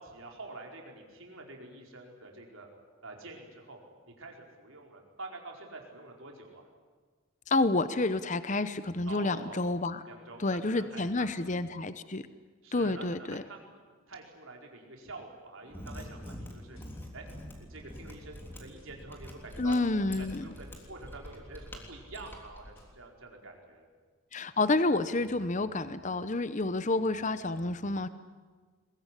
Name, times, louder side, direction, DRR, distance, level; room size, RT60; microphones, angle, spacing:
voice 1, 0.0-2.7 3.0-3.8 4.1-6.7 9.1-9.6 10.1-11.5 12.6-13.8 14.1-16.8 17.1-17.3 17.6-19.8 20.2-23.9, right 2 dB, 75° right, 1 dB, 4.7 m, -47 dB
voice 2, 7.5-10.0 10.4-12.3 12.7-13.4 19.6-20.5 24.3-28.1, left 2 dB, 35° left, 13 dB, 0.8 m, -29 dB
Mechanisms, 15.6-22.8, left 1 dB, 10° left, 3.4 m, -46 dB
sound 1, 15.8-16.8 17.3-18.1 18.8-18.9 19.8-20.8 21.3-22.3 22.8-22.9, equal, 75° left, 7.9 m, -57 dB
22.0 x 21.5 x 10.0 m, 1.5 s
head